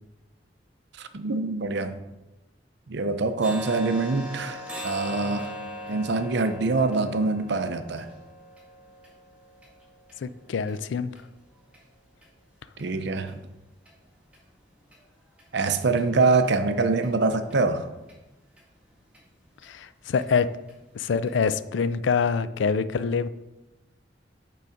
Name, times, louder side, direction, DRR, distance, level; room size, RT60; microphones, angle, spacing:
voice 1, 1.0-2.0 2.9-5.5 5.9-8.1 12.8-13.3 15.5-17.9, right 3 dB, 65° right, 9 dB, 0.6 m, -25 dB
sound 1, 3.4-11.2 11.7-11.8 12.2-12.4 12.8-12.9 13.3-13.4 13.9-14.0 14.3-14.4 14.9-15.0 15.4-15.5 16.0-16.1 16.4-16.5 17.0-17.1 17.5-17.6 18.1-18.2 18.6-18.7 19.1-19.2 19.6-19.7 20.1-20.2 20.7-20.8 21.3-21.4, equal, 5° right, 1.8 m, -40 dB
voice 2, 10.2-11.1 19.6-20.5 20.9-23.3, left 5 dB, 80° left, 15 dB, 0.4 m, -25 dB
8.3 x 3.9 x 5.1 m, 1.0 s
head